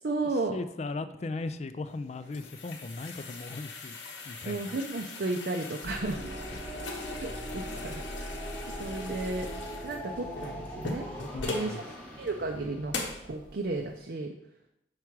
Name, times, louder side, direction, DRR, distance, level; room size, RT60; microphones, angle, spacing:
voice 1, 0.0-0.6 4.4-6.3 7.2-8.5 8.8-9.5 9.8-11.1 11.5-11.8 12.2-13.0 13.2-14.3, right 2 dB, 55° right, 2 dB, 0.5 m, -33 dB
voice 2, 0.5-4.0 4.2-4.8 6.5-6.8 11.3-11.9, left 3 dB, 35° left, 12 dB, 0.3 m, -38 dB
sound 1, 1.9-11.8 12.3-12.4 12.9-13.3, left 3 dB, 85° left, 1.0 m, -40 dB
sound 2, 5.8-13.9, equal, 10° left, 1.0 m, -41 dB
5.7 x 4.8 x 4.6 m, 0.82 s
head